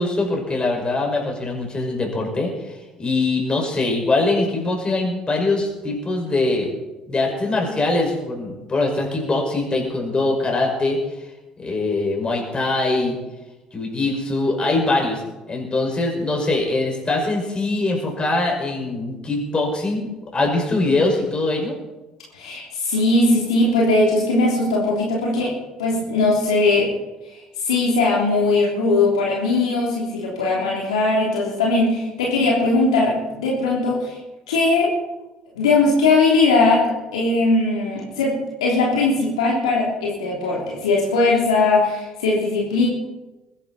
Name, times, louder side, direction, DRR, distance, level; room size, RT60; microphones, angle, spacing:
voice 1, 0.0-6.7 7.1-11.0 11.6-13.2 13.7-15.2 15.5-21.7, left 2 dB, 30° left, 0 dB, 5.6 m, -22 dB
voice 2, 22.3-25.5 25.8-26.9 27.6-34.2 34.5-34.9 35.6-42.9, left 3 dB, 85° left, -3 dB, 3.2 m, -19 dB
21.0 x 11.5 x 4.3 m, 1.1 s
hypercardioid pair, 55°, 3 cm